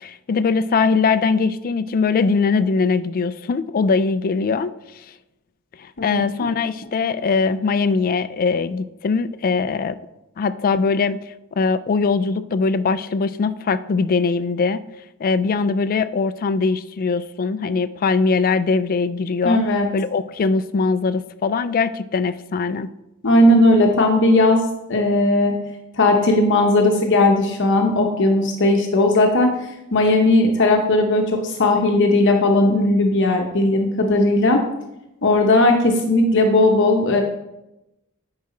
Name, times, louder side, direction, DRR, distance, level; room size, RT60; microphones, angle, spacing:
voice 1, 0.0-4.7 5.0-5.1 5.8-10.0 10.4-11.2 11.6-14.8 15.2-19.6 19.9-22.9, left 4 dB, 40° left, 13 dB, 0.3 m, -21 dB
voice 2, 6.0-6.5 19.4-19.9 23.2-24.6 24.9-25.5 25.9-34.6 35.2-37.2, left 2 dB, 55° left, 2 dB, 0.9 m, -17 dB
9.5 x 4.9 x 4.3 m, 0.92 s
head